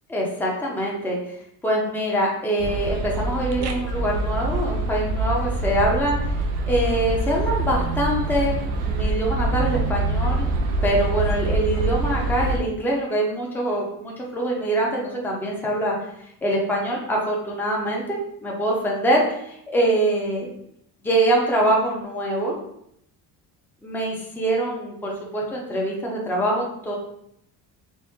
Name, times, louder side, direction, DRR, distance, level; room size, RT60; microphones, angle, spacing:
voice 1, 0.1-1.2 1.6-6.3 6.7-10.5 10.8-16.0 16.4-20.5 21.0-22.6 23.8-27.0, right 1 dB, 5° left, -3 dB, 0.7 m, -24 dB
sound 1, 2.6-12.6, right 2 dB, 85° right, 0.7 m, -25 dB
4.2 x 2.1 x 3.6 m, 0.75 s
cardioid pair, 130°, 38 cm